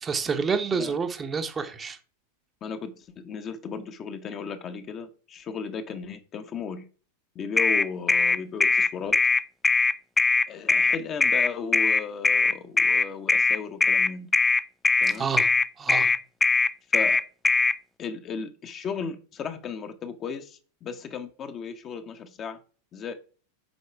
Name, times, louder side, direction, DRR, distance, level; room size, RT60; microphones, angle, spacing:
voice 1, 0.0-2.0 15.1-15.5 15.8-16.1, right 5 dB, 20° right, 0.9 m, -28 dB
voice 2, 2.6-6.9 7.3-9.2 10.5-14.3 15.0-15.3 16.9-17.2 18.0-22.6 22.9-23.1, left 6 dB, 30° left, 1.0 m, -35 dB
sound 1, 7.6-17.7, left 3 dB, 10° left, 0.3 m, -21 dB
8.1 x 4.7 x 4.6 m
figure-of-eight pair, 90°, 0 cm